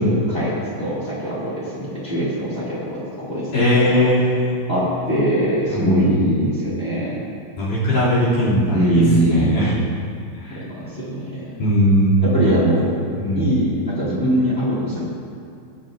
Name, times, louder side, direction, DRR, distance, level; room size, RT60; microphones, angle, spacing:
voice 1, 0.0-3.5 4.7-7.2 8.7-9.6 10.5-11.5 12.2-13.1 13.3-15.0, right 1 dB, 70° left, -9 dB, 0.6 m, -22 dB
voice 2, 3.5-4.6 5.7-6.2 7.6-9.7 10.4-10.6 11.6-12.7 13.1-13.5, equal, 45° left, -9 dB, 3.9 m, -19 dB
20.5 x 8.7 x 2.6 m, 2.5 s
omnidirectional pair, 5.6 m